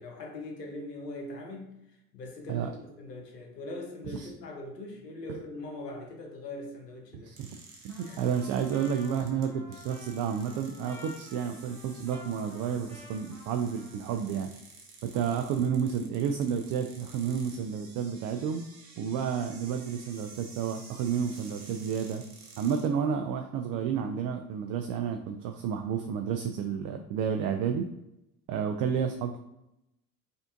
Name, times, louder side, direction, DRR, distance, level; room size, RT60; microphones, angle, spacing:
voice 1, 0.0-7.3 8.0-8.2, left 2 dB, 90° left, 2 dB, 0.8 m, -41 dB
voice 2, 7.1-7.6 7.8-14.5 15.0-18.6 19.0-22.2 22.6-27.8 28.5-29.4, right 7 dB, 45° right, 5 dB, 0.4 m, -31 dB
sound 1, 7.4-22.9, right 4 dB, 70° right, 0.9 m, -52 dB
Trumpet, 7.9-14.5, left 2 dB, 5° left, 1.1 m, -52 dB
5.1 x 2.5 x 2.5 m, 0.87 s
hypercardioid pair, 60°, 47 cm